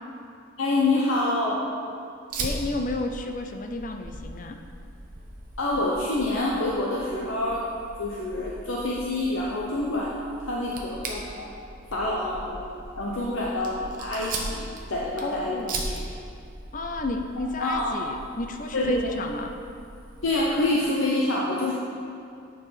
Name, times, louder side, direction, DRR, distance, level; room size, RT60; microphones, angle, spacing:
voice 1, 0.6-1.6 5.6-7.6 8.0-10.2 10.4-11.5 11.9-12.6 13.0-16.0 17.6-17.9 18.7-19.1 20.2-21.7, left 2 dB, 75° left, -4 dB, 0.9 m, -27 dB
Fire, 2.3-20.6, right 2 dB, 40° right, 0.9 m, -39 dB
voice 2, 2.4-4.6 15.2-15.7 16.7-19.5, left 2 dB, 40° left, 5 dB, 0.5 m, -32 dB
9.2 x 4.7 x 5.7 m, 2.5 s
head